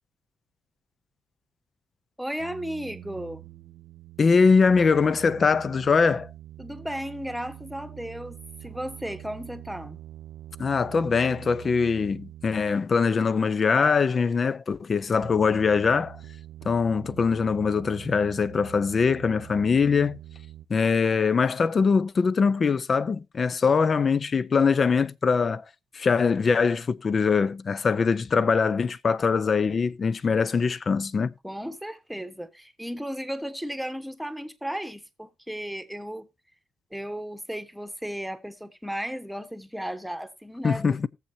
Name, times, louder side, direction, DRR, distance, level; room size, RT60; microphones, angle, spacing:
voice 1, 2.2-3.5 6.6-10.0 31.4-36.3 36.9-41.0, equal, ahead, 1.2 m, -35 dB
sound 1, 2.4-13.1 15.2-20.7, right 13 dB, 80° right, 0.6 m, -45 dB
voice 2, 4.2-6.3 10.6-16.2 16.6-20.2 20.7-25.6 25.9-31.3 40.6-41.1, left 5 dB, 40° left, 0.6 m, -22 dB
18.5 x 7.3 x 2.8 m
cardioid pair, 90°, 0 cm